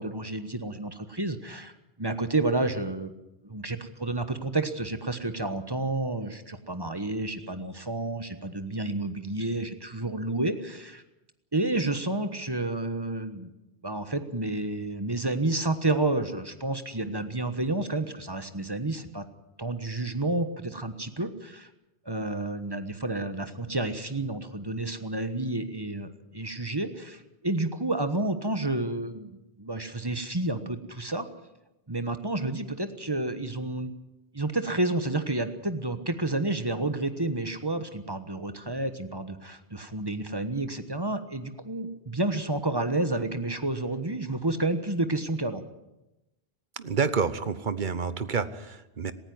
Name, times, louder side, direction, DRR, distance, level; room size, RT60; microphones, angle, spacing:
voice 1, 0.0-3.1 3.4-11.0 11.5-13.5 13.8-19.2 19.6-21.7 22.0-31.3 31.9-33.9 34.3-45.6, right 2 dB, 20° right, 10 dB, 1.3 m, -30 dB
voice 2, 46.8-49.1, right 5 dB, 50° right, 14 dB, 1.1 m, -28 dB
18.5 x 15.5 x 9.6 m, 0.97 s
omnidirectional pair, 1.1 m